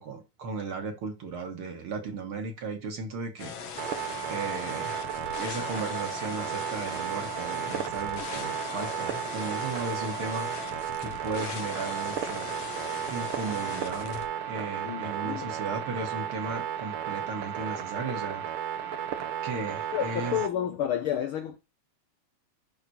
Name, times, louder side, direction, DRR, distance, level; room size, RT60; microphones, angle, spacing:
voice 1, 0.0-4.0 4.3-5.1 5.4-12.5 13.1-18.4 19.4-20.4, right 3 dB, 55° right, 1.9 m, -36 dB
sound 1, 3.4-14.3, left 6 dB, 65° left, 2.2 m, -40 dB
sound 2, 3.8-20.5, right 9 dB, 70° right, 1.3 m, -34 dB
voice 2, 14.8-15.5 19.9-21.6, left 10 dB, 80° left, 1.1 m, -30 dB
11.0 x 3.8 x 4.2 m
omnidirectional pair, 3.4 m